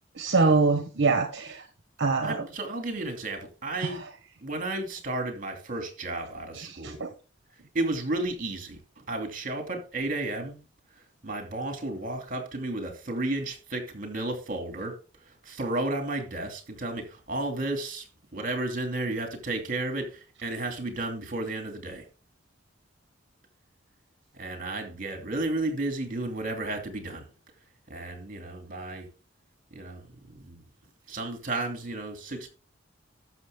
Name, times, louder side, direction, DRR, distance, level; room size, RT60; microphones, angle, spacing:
voice 1, 0.2-1.7 2.0-2.4 3.8-3.9 6.6-7.1, right 3 dB, 65° right, 1.2 m, -24 dB
voice 2, 2.2-4.0 4.4-7.0 7.7-10.6 10.9-22.1 24.3-27.3 27.9-29.1 29.7-30.6 31.1-32.5, right 2 dB, 45° right, 2.8 m, -33 dB
12.0 x 6.7 x 3.8 m
head